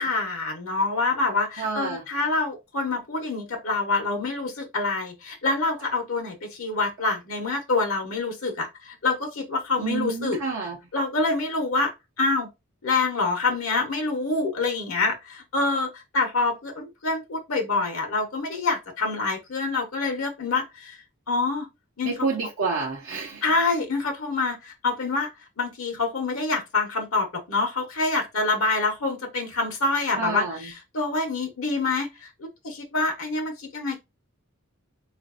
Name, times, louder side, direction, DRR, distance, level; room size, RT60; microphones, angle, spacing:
voice 1, 0.0-10.4 10.9-11.9 12.2-12.5 12.8-21.0 21.3-21.7 22.0-22.3 23.4-25.3 25.6-34.0, left 3 dB, 70° left, 0.8 m, -26 dB
voice 2, 1.6-2.0 9.8-10.8 22.0-23.4 30.2-30.6, right 4 dB, 60° right, 0.6 m, -28 dB
4.0 x 2.5 x 2.4 m
head